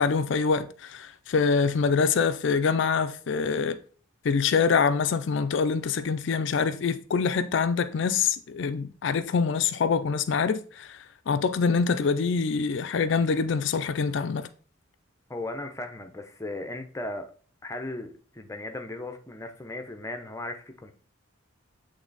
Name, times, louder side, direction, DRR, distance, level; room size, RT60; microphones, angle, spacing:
voice 1, 0.0-3.8 4.2-14.5, left 5 dB, 60° left, 0.4 m, -25 dB
voice 2, 15.3-17.3 17.6-20.9, left 2 dB, 15° left, 0.6 m, -37 dB
8.2 x 3.3 x 4.0 m
head